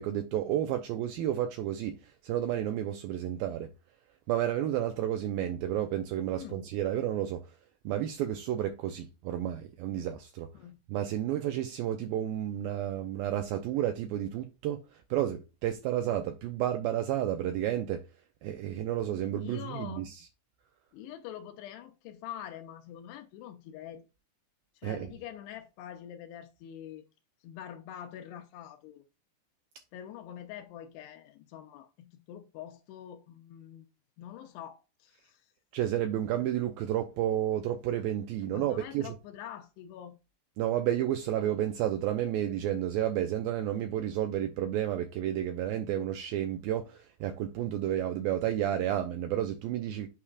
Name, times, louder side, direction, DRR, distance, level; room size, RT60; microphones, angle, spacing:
voice 1, 0.0-3.7 4.3-7.4 7.9-10.5 10.9-14.8 15.1-18.0 18.4-20.2 24.8-25.1 35.7-39.1 40.6-50.1, right 11 dB, 85° right, 2.1 m, -31 dB
voice 2, 19.4-20.1 20.9-24.1 24.8-27.1 27.4-29.0 29.9-33.9 34.2-35.4 36.2-36.3 38.4-40.2, left 10 dB, 80° left, 2.8 m, -45 dB
8.6 x 4.9 x 2.4 m
omnidirectional pair, 4.8 m